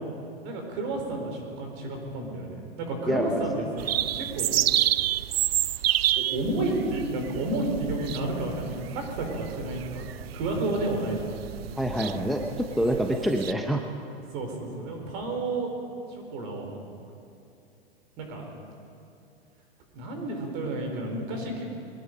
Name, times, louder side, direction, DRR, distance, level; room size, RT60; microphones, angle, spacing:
voice 1, 0.4-4.5 6.2-10.1 10.3-11.3 12.0-12.4 14.3-15.7 16.1-16.8 18.2-18.5 19.9-21.6, right 2 dB, 45° right, 2 dB, 4.2 m, -31 dB
sound 1, 3.8-13.5, right 13 dB, 75° right, 0.5 m, -29 dB
voice 2, 11.8-13.8, equal, ahead, 3 dB, 0.8 m, -26 dB
22.0 x 11.0 x 5.3 m, 2.7 s
hypercardioid pair, 105°, 31 cm